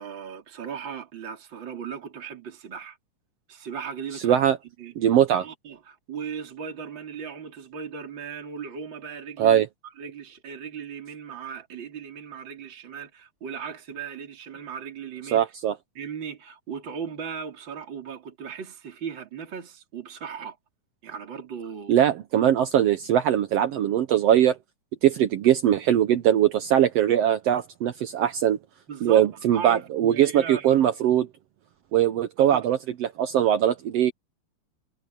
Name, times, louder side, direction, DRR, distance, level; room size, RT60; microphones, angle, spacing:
voice 1, 0.0-3.0 3.5-4.4 4.8-4.9 5.4-9.6 10.0-15.4 16.0-20.6 21.0-21.9 28.9-30.8 32.4-32.7, right 7 dB, 35° right, 3.8 m, -37 dB
voice 2, 4.2-4.6 5.0-5.5 9.4-9.7 15.3-15.8 21.9-24.6 25.0-28.6 29.0-31.3 31.9-34.1, right 10 dB, 85° right, 1.4 m, -21 dB
omnidirectional pair, 3.9 m